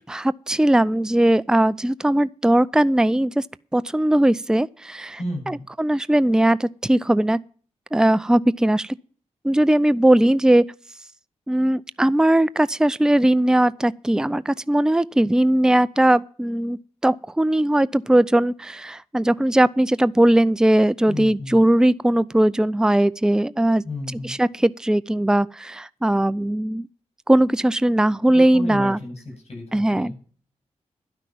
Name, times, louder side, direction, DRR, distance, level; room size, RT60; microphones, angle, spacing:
voice 1, 0.1-3.4 3.7-5.2 5.5-7.4 7.9-9.0 9.4-10.6 11.5-23.8 24.2-26.9 27.3-29.0 29.7-30.1, right 1 dB, 5° right, 0.5 m, -19 dB
voice 2, 5.2-5.7 21.1-21.6 23.8-24.4 28.3-30.2, left 1 dB, 55° left, 7.2 m, -33 dB
12.0 x 6.0 x 9.1 m
cardioid pair, 50°, 13 cm